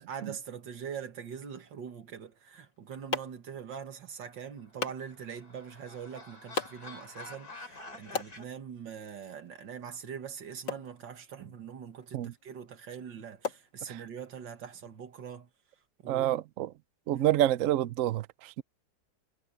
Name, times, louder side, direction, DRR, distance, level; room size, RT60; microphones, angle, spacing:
voice 1, 0.0-15.5 16.0-16.3 17.1-17.3, right 7 dB, 90° right, 2.4 m, -43 dB
sound 1, 2.4-14.4, left 4 dB, 75° left, 3.2 m, -43 dB
sound 2, 4.6-8.4, left 2 dB, 55° left, 4.7 m, -48 dB
voice 2, 16.1-16.7 17.1-18.6, right 13 dB, 65° right, 0.8 m, -28 dB
omnidirectional pair, 1.9 m